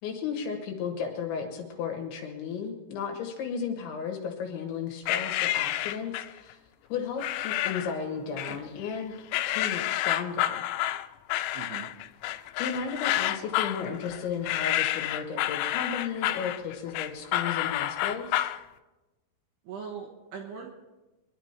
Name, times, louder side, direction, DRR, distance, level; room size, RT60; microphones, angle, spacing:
voice 1, 0.0-6.6 6.9-9.1 9.5-10.7 12.6-18.5, left 6 dB, 70° left, 2 dB, 3.6 m, -34 dB
sound 1, 5.1-6.4 7.2-8.0 8.4-9.0 9.3-18.6, left 14 dB, 90° left, 3.4 m, -29 dB
voice 2, 8.3-8.6 11.5-11.9 19.6-20.7, right 6 dB, 65° right, 1 dB, 2.9 m, -41 dB
24.0 x 11.0 x 4.4 m, 1.1 s
omnidirectional pair, 6.0 m